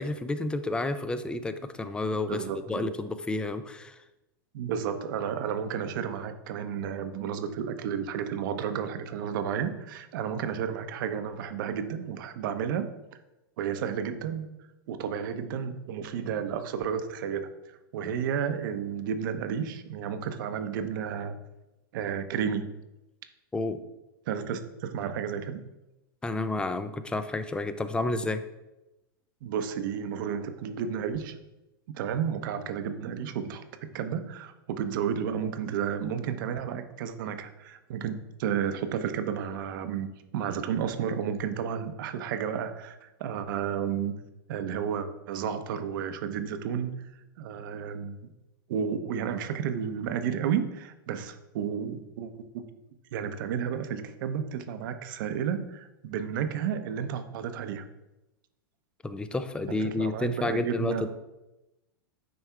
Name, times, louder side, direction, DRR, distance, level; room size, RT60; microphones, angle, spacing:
voice 1, 0.0-4.0 23.5-23.8 26.2-28.4 59.0-61.1, left 2 dB, 10° left, 11 dB, 0.4 m, -30 dB
voice 2, 2.3-2.9 4.5-12.9 13.6-14.5 14.9-17.5 17.9-21.4 21.9-22.6 24.3-25.6 29.4-31.4 32.0-33.6 33.9-40.1 40.3-44.1 44.5-46.9 47.4-48.2 48.7-52.6 53.1-57.8 59.8-61.1, right 8 dB, 60° right, 9 dB, 0.8 m, -32 dB
9.2 x 3.5 x 4.5 m, 0.97 s
hypercardioid pair, 130°, 12 cm